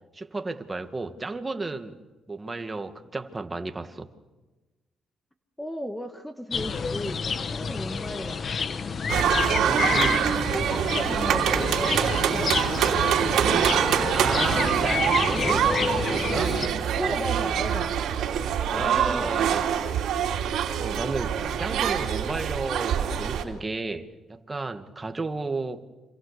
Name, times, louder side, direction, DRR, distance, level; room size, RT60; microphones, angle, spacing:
voice 1, 0.1-2.0 2.3-4.1 9.6-10.3 13.7-16.6 17.1-17.2 18.7-19.7 20.8-25.8, right 3 dB, 20° right, 6 dB, 2.0 m, -33 dB
voice 2, 5.6-8.4 9.4-12.7 16.9-17.9 18.7-19.6 21.2-21.5, equal, 5° left, 8 dB, 1.5 m, -36 dB
sound 1, 6.5-16.7, left 5 dB, 45° left, 1.1 m, -29 dB
sound 2, 9.1-23.4, right 9 dB, 80° right, 2.9 m, -25 dB
27.0 x 26.5 x 6.8 m, 1.2 s
cardioid pair, 90°, 0 cm